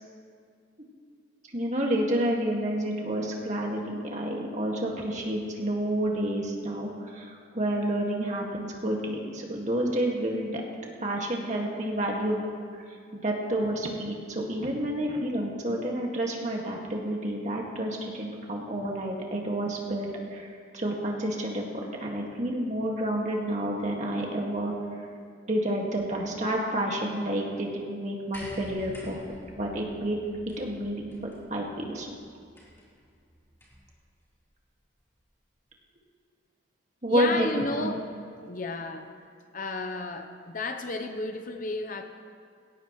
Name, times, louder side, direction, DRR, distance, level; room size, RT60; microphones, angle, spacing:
voice 1, 1.5-10.6 11.0-12.4 12.8-12.9 13.1-21.7 22.0-24.7 25.5-29.2 29.5-30.2 30.6-31.1 31.5-32.2 37.0-37.9, right 1 dB, 35° right, -1 dB, 2.0 m, -29 dB
sound 1, 28.3-33.9 35.0-35.1, equal, 15° left, 3.9 m, -49 dB
voice 2, 37.1-38.0 38.5-39.1 39.5-42.0, left 2 dB, 40° left, 6 dB, 0.8 m, -32 dB
19.5 x 17.5 x 3.2 m, 2.3 s
head